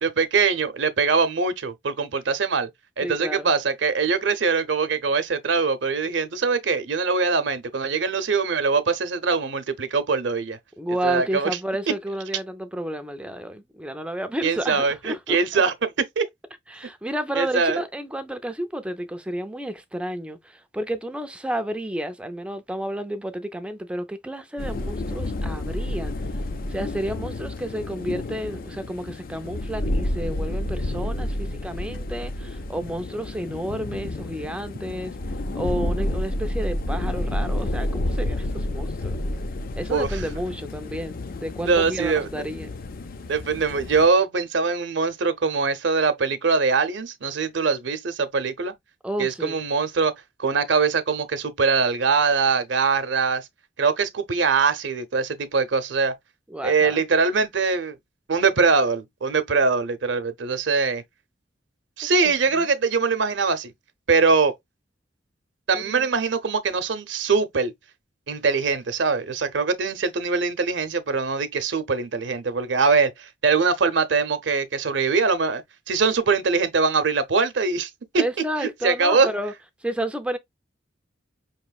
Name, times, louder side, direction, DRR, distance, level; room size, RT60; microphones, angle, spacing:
voice 1, 0.0-2.7 3.0-10.6 11.0-11.5 14.4-16.3 17.4-17.8 39.9-40.1 41.7-42.3 43.3-48.7 49.2-50.1 50.4-53.4 53.8-56.1 56.6-58.0 58.3-61.0 62.0-63.7 64.1-64.5 65.7-67.7 68.3-75.6 75.9-78.2 78.8-79.3, right 4 dB, 70° right, 0.7 m, -22 dB
voice 2, 3.0-3.5 10.8-15.6 16.7-26.1 26.7-35.2 35.5-39.2 39.8-42.8 49.0-49.6 56.5-57.0 62.2-62.7 65.7-66.1 78.1-79.5 79.8-80.4, right 1 dB, 5° right, 0.5 m, -31 dB
sound 1, 24.6-44.1, left 1 dB, 50° left, 0.5 m, -30 dB
5.3 x 3.0 x 2.3 m
head